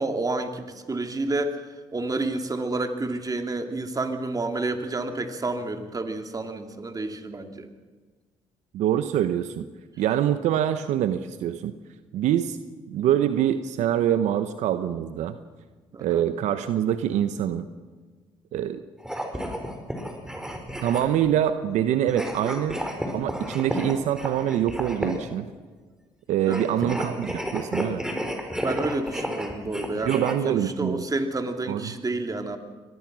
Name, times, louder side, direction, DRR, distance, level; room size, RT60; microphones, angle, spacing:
voice 1, 0.0-1.6 1.9-7.7 15.9-16.2 26.4-26.7 28.6-32.6, right 2 dB, 30° right, 6 dB, 2.9 m, -29 dB
voice 2, 8.7-9.6 10.0-11.7 12.1-12.6 12.9-15.4 16.0-17.7 18.5-18.8 20.8-22.8 23.1-25.5 26.3-28.0 30.0-31.0 31.7-31.9, right 10 dB, 75° right, 11 dB, 1.0 m, -25 dB
sound 1, 19.0-21.3 22.1-25.3 26.4-30.3, equal, 5° right, 4.9 m, -32 dB
24.5 x 19.0 x 6.3 m, 1.4 s
supercardioid pair, 60°, 12 cm